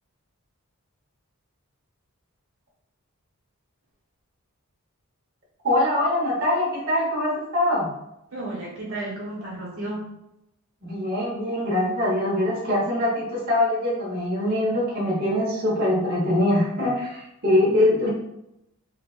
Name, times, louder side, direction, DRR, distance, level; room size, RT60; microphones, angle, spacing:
voice 1, 5.6-7.9 10.8-18.1, left 1 dB, 45° right, -5 dB, 1.0 m, -23 dB
voice 2, 8.3-10.1 17.6-18.1, right 1 dB, 70° right, -5 dB, 1.0 m, -33 dB
4.0 x 2.2 x 2.3 m, 0.85 s
head